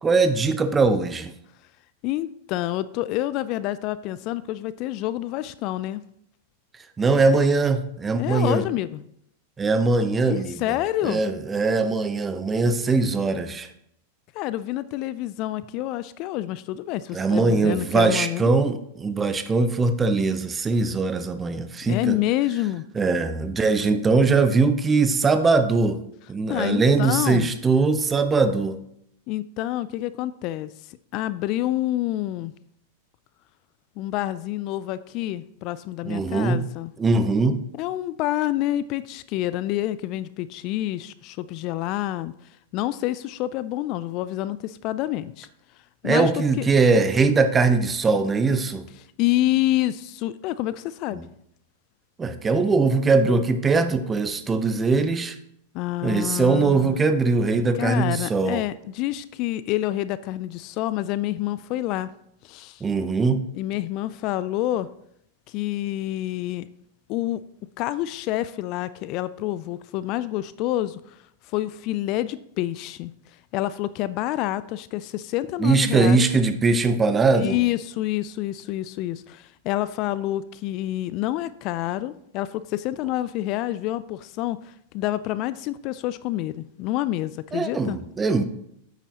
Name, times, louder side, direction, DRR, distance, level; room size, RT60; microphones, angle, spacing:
voice 1, 0.0-1.3 7.0-8.6 9.6-10.6 11.0-13.7 17.1-22.2 23.0-26.0 26.3-28.8 36.0-36.6 37.0-37.6 46.0-48.9 52.2-55.4 56.0-58.6 62.8-63.4 75.6-77.6 87.5-88.4, right 4 dB, 20° right, 10 dB, 0.8 m, -21 dB
voice 2, 2.0-6.0 8.2-9.0 10.3-11.2 14.3-18.5 21.8-22.8 26.5-27.5 29.3-32.5 34.0-36.9 37.8-42.3 42.7-45.5 46.0-46.7 49.2-51.2 55.7-57.0 57.8-62.1 62.4-62.8 63.6-64.9 65.5-66.7 67.1-67.4 67.8-71.2 71.5-73.1 73.5-76.2 77.4-88.0, left 15 dB, 45° left, 16 dB, 0.3 m, -28 dB
9.0 x 8.8 x 2.9 m, 0.73 s
hypercardioid pair, 100°, 0 cm